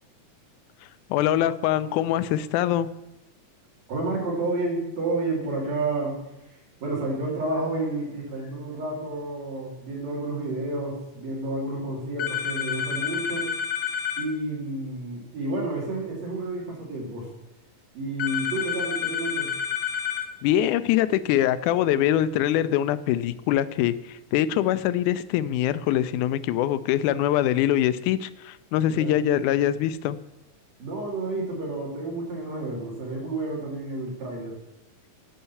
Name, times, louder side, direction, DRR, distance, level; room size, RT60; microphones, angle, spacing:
voice 1, 1.1-2.9 20.4-30.2, left 12 dB, 85° left, 14 dB, 2.0 m, -23 dB
voice 2, 3.9-6.2 6.5-13.5 14.2-17.3 17.9-19.5 28.9-29.2 30.8-34.6, right 2 dB, 60° right, -3 dB, 3.8 m, -30 dB
sound 1, 12.2-14.3 18.2-20.3, left 8 dB, 70° left, 1.1 m, -29 dB
10.0 x 5.4 x 7.0 m, 0.92 s
omnidirectional pair, 3.5 m